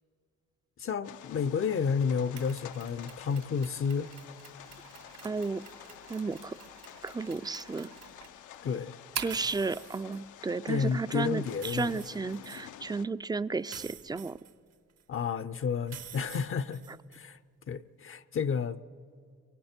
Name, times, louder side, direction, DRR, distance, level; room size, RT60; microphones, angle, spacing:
voice 1, 0.8-4.1 8.6-9.0 10.7-12.0 15.1-16.8 17.1-17.4 17.7-18.8, left 6 dB, 45° left, 0.6 m, -31 dB
sound 1, 1.0-13.0, left 11 dB, 80° left, 0.7 m, -50 dB
Mechanisms, 2.4-9.5, right 8 dB, 75° right, 2.5 m, -46 dB
voice 2, 5.2-5.6 6.1-6.6 7.0-7.9 9.2-14.4, right 4 dB, 15° right, 0.4 m, -33 dB
sound 2, 9.3-10.2 11.5-12.7 13.7-15.0 15.9-17.2, right 8 dB, 55° right, 1.0 m, -47 dB
29.5 x 24.0 x 4.4 m
cardioid pair, 90°, 30 cm